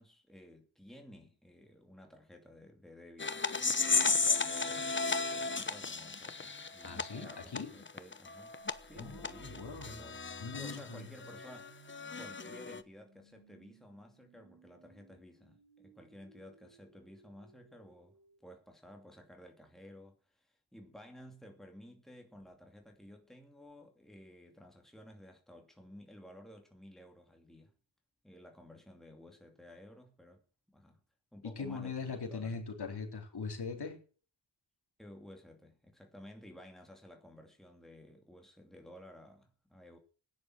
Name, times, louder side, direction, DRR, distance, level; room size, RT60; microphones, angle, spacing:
voice 1, 0.0-5.1 5.3-18.2 18.4-27.7 28.2-30.4 30.7-31.0 31.3-32.6 35.0-40.0, left 1 dB, ahead, 2.6 m, -54 dB
sound 1, 3.2-10.8 11.2-12.8, left 4 dB, 25° left, 0.9 m, -34 dB
voice 2, 6.8-7.8 9.0-9.9 10.4-11.1 31.4-34.0, left 4 dB, 60° left, 3.7 m, -41 dB
sound 2, 8.5-18.4, right 3 dB, 60° right, 5.2 m, -60 dB
16.0 x 9.9 x 6.0 m
wide cardioid pair, 120°, 44 cm